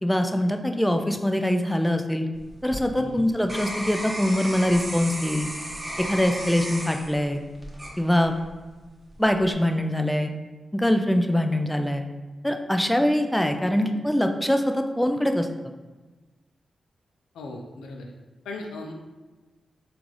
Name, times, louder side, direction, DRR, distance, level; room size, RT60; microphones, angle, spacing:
voice 1, 0.0-2.3 2.6-5.5 6.0-7.4 8.0-8.3 9.2-10.3 10.7-12.0 12.4-15.5, left 1 dB, 5° left, 6 dB, 0.4 m, -23 dB
sound 1, 2.3-8.5 9.1-9.5, equal, 25° right, 1.0 m, -35 dB
voice 2, 3.0-3.3 17.3-18.1 18.4-18.9, left 2 dB, 90° left, 2 dB, 0.4 m, -37 dB
3.7 x 2.4 x 3.0 m, 1.3 s
supercardioid pair, 40°, 0 cm